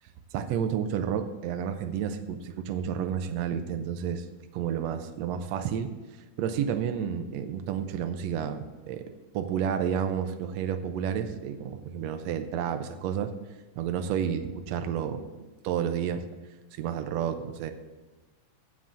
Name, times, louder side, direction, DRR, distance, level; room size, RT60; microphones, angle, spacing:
voice 1, 0.3-4.2 4.5-5.9 6.4-13.3 13.8-16.2 16.7-17.7, right 8 dB, 80° right, 7 dB, 1.6 m, -31 dB
7.5 x 7.4 x 8.1 m, 1.2 s
omnidirectional pair, 3.8 m